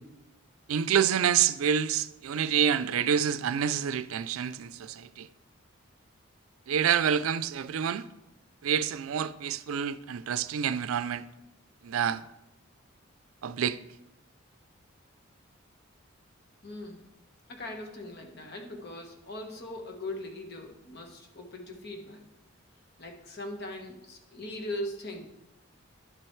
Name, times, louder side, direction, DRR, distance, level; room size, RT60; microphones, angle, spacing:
voice 1, 0.7-5.3 6.7-8.1 8.6-11.2 11.8-12.2 13.4-13.8, right 8 dB, 85° right, 0.4 m, -27 dB
voice 2, 16.6-17.1 17.5-22.3 23.0-25.3, left 1 dB, 50° left, 1.3 m, -40 dB
11.0 x 7.6 x 3.2 m
head